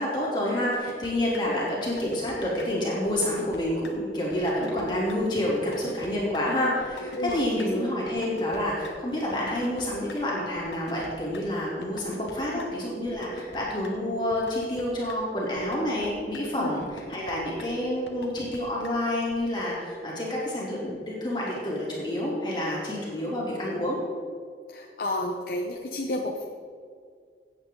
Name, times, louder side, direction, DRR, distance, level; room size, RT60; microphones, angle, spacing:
voice 1, 0.0-24.0, left 1 dB, 25° left, -6 dB, 2.9 m, -28 dB
sound 1, 0.7-1.1 1.3-1.4 1.8-2.3 2.6-2.7 3.1-3.6 3.8-3.9 4.3-4.8 5.1-5.2 5.6-6.1 6.3-6.4 6.8-7.3 7.6-7.7 8.1-8.6 8.8-8.9 9.3-10.2 10.6-11.4 11.8-12.3 12.6-12.7 13.1-13.6 13.8-13.9 14.3-14.8 15.1-15.2 15.6-16.1 16.3-16.4 16.8-17.3 17.6-17.7 18.1-18.6 18.8-18.9 19.3-19.4, left 3 dB, 80° left, 1.4 m, -43 dB
voice 2, 7.0-7.6 12.5-12.6 16.6-16.7 24.7-26.4, left 1 dB, 55° left, 0 dB, 0.9 m, -31 dB
16.0 x 8.5 x 3.8 m, 2.2 s
head